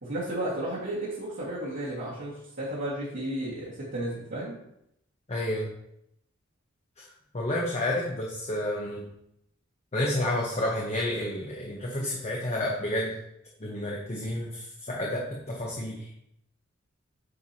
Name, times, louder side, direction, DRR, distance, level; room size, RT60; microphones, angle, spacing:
voice 1, 0.0-4.6, right 1 dB, 65° right, -9 dB, 1.8 m, -33 dB
voice 2, 5.3-5.7 7.3-9.0 9.9-13.1 13.6-16.1, left 1 dB, 35° left, -2 dB, 0.9 m, -30 dB
9.3 x 4.6 x 2.8 m, 0.78 s
head